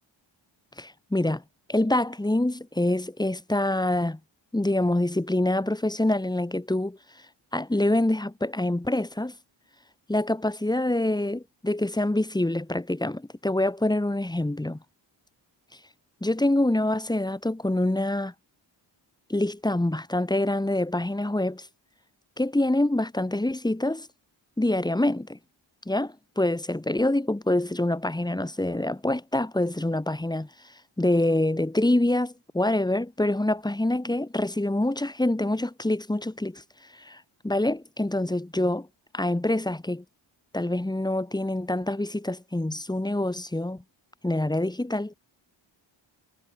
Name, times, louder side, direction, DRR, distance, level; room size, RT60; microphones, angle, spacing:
voice 1, 0.8-1.4 1.7-4.2 4.5-7.0 7.5-9.3 10.1-14.8 16.2-18.3 19.3-21.7 22.4-24.1 24.6-25.4 25.9-30.5 31.0-36.6 37.0-38.9 39.1-40.0 40.5-43.8 44.2-45.1, left 1 dB, 10° left, 2.5 m, -26 dB
wide cardioid pair, 155°, 46 cm